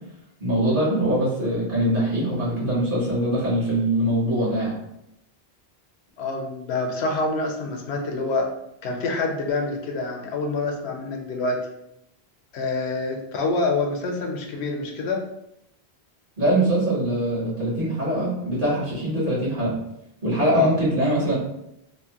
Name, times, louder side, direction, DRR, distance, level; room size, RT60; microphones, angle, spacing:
voice 1, 0.4-4.7 16.4-19.8 20.2-21.3, right 1 dB, 55° right, -7 dB, 1.4 m, -23 dB
voice 2, 6.2-8.5 8.8-11.6 12.5-15.2 20.5-20.8, left 3 dB, 75° left, 2 dB, 0.8 m, -26 dB
3.0 x 2.1 x 2.8 m, 0.82 s
omnidirectional pair, 1.1 m